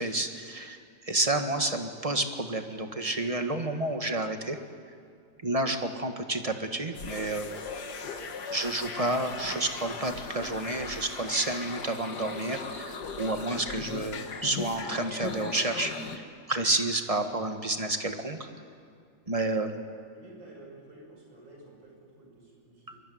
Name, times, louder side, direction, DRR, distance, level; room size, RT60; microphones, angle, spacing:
voice 1, 0.0-4.6 5.4-7.5 8.5-18.4 19.3-19.7, right 2 dB, 20° right, 6 dB, 1.6 m, -30 dB
sound 1, 6.9-16.2, left 5 dB, 65° left, 2.1 m, -38 dB
voice 2, 20.1-23.0, right 1 dB, 85° right, 0 dB, 7.1 m, -51 dB
23.5 x 23.0 x 9.4 m, 2.3 s
omnidirectional pair, 2.0 m